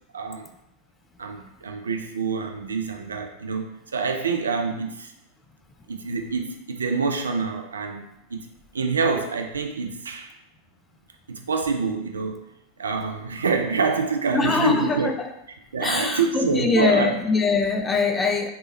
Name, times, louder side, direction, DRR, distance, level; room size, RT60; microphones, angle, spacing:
voice 1, 0.1-0.5 1.2-5.1 5.9-8.5 8.7-10.3 11.3-12.4 12.8-15.1 15.7-17.1, right 5 dB, 70° right, 5 dB, 0.4 m, -26 dB
voice 2, 14.3-15.3 15.8-18.5, left 4 dB, 15° left, 5 dB, 0.4 m, -22 dB
3.2 x 3.2 x 3.0 m, 0.83 s
figure-of-eight pair, 90°, 0 cm